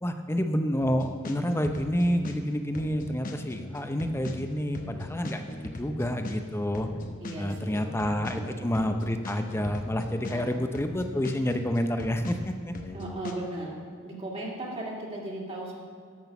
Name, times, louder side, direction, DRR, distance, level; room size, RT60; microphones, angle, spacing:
voice 1, 0.0-6.9 7.4-12.7, equal, 10° left, 7 dB, 0.6 m, -29 dB
sound 1, 0.8-2.4 2.7-6.4 6.7-10.4 10.7-13.3, left 2 dB, 40° left, 1.0 m, -40 dB
voice 2, 7.2-8.0 8.3-8.6 10.3-10.5 12.9-13.8 14.0-15.8, right 1 dB, 30° right, -3 dB, 2.1 m, -37 dB
13.5 x 6.3 x 5.9 m, 2.1 s
head